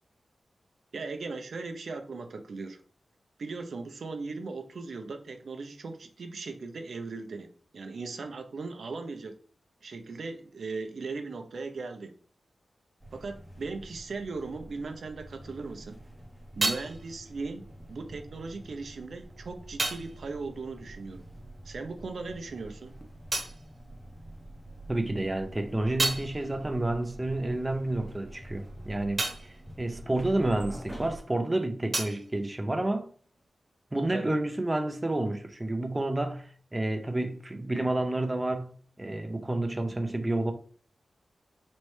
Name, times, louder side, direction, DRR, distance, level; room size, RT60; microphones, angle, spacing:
voice 1, 0.9-2.8 3.4-9.3 9.8-12.2 13.1-16.0 16.6-21.3 21.6-23.0 34.1-34.3, right 3 dB, 70° right, 0.6 m, -38 dB
sound 1, 13.0-31.2, right 1 dB, ahead, 0.8 m, -47 dB
sound 2, 15.8-21.8 22.0-24.7 25.1-31.2 31.4-33.5, right 2 dB, 45° right, 1.0 m, -37 dB
voice 2, 24.9-33.1 33.9-40.5, right 2 dB, 20° right, 0.5 m, -30 dB
4.2 x 3.1 x 3.2 m
wide cardioid pair, 85°, 0 cm